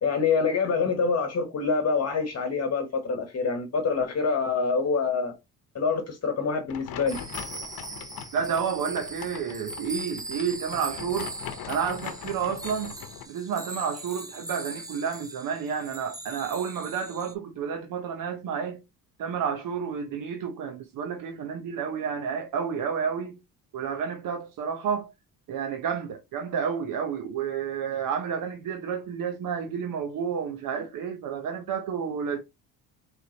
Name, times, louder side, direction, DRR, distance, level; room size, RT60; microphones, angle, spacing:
voice 1, 0.0-5.3 5.7-7.2, left 5 dB, 40° left, 1.1 m, -26 dB
sound 1, 6.7-13.3, left 9 dB, 65° left, 0.9 m, -40 dB
sound 2, 7.1-17.3, right 2 dB, 10° right, 0.6 m, -40 dB
voice 2, 8.3-11.3 11.7-12.9 13.3-18.8 19.2-23.4 23.7-25.1 25.5-32.4, right 7 dB, 60° right, 0.8 m, -30 dB
4.7 x 3.2 x 2.8 m
cardioid pair, 100°, 38 cm